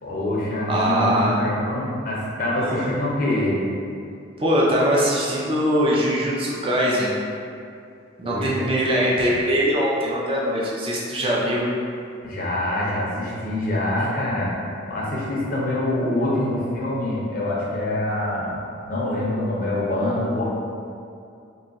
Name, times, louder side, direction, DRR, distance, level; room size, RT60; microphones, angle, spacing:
voice 1, 0.0-3.6 8.2-8.7 12.2-18.6 18.8-20.4, left 1 dB, 45° left, -6 dB, 0.6 m, -25 dB
voice 2, 0.7-1.4 2.5-2.9 4.4-7.2 8.2-11.7, equal, 25° right, -5 dB, 0.5 m, -22 dB
2.8 x 2.3 x 4.0 m, 2.5 s
head